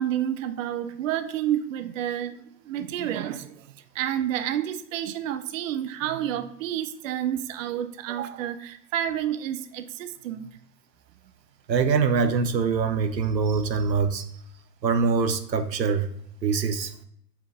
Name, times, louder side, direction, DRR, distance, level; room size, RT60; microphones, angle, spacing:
voice 1, 0.0-10.5, right 11 dB, 55° right, 10 dB, 0.6 m, -30 dB
voice 2, 11.7-14.3 14.8-16.1 16.4-16.9, right 5 dB, 85° right, 8 dB, 0.8 m, -23 dB
5.6 x 3.9 x 4.7 m, 0.69 s
figure-of-eight pair, 105°, 49 cm